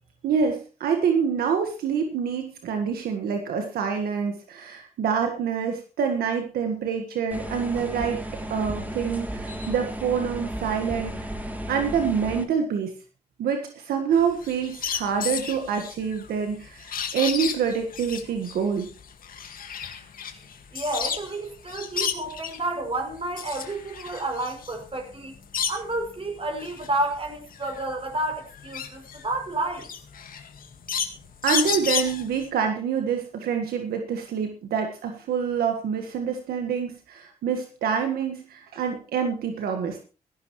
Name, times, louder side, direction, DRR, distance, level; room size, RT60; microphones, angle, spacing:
voice 1, 0.2-8.2 8.5-11.3 11.7-12.9 13.4-18.9 31.4-40.0, right 6 dB, 85° right, 1.6 m, -26 dB
sound 1, 7.3-12.4, right 1 dB, 10° right, 3.0 m, -34 dB
sound 2, 14.1-21.4 21.7-22.7 23.1-26.1 26.5-32.5, left 7 dB, 70° left, 1.9 m, -32 dB
voice 2, 20.7-25.3 25.7-29.9, right 2 dB, 40° right, 6.7 m, -30 dB
16.0 x 14.5 x 3.2 m
supercardioid pair, 55°, 15 cm